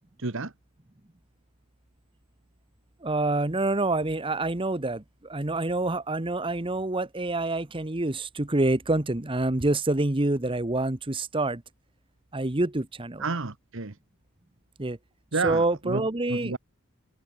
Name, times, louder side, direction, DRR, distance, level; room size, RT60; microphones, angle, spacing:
voice 1, 0.2-0.5 13.2-14.0 15.3-16.6, right 3 dB, 60° right, 1.3 m, -31 dB
voice 2, 3.0-11.6 12.3-13.2 14.8-15.0 15.4-16.5, right 2 dB, 25° right, 1.1 m, -27 dB
head